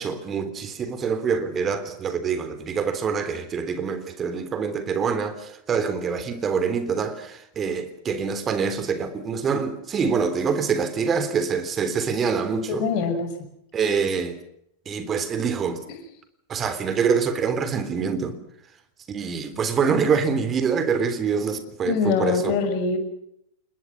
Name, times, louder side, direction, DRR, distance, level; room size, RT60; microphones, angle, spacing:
voice 1, 0.0-12.9 13.7-14.4 14.8-15.8 16.5-18.3 19.1-22.5, right 6 dB, 25° right, 3.4 m, -25 dB
voice 2, 12.7-13.3 21.8-23.0, left 5 dB, 45° left, 5.8 m, -23 dB
28.5 x 21.5 x 6.1 m
figure-of-eight pair, 90°, 0 cm